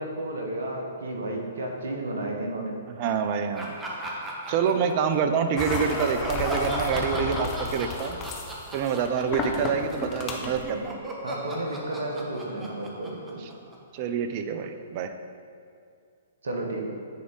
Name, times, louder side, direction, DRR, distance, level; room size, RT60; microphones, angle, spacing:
voice 1, 0.0-2.7 11.2-13.4 16.4-16.8, right 1 dB, 65° right, 1 dB, 1.1 m, -32 dB
voice 2, 3.0-3.7 4.5-8.2 8.7-11.0 13.9-15.1, right 6 dB, 40° right, 7 dB, 0.5 m, -27 dB
Laughter, 3.5-5.3 5.7-10.1 10.4-14.0, right 1 dB, 15° right, 0.9 m, -36 dB
sound 1, 5.6-10.7, left 3 dB, 25° left, 0.7 m, -33 dB
9.3 x 3.6 x 3.8 m, 2.3 s
figure-of-eight pair, 115°, 0 cm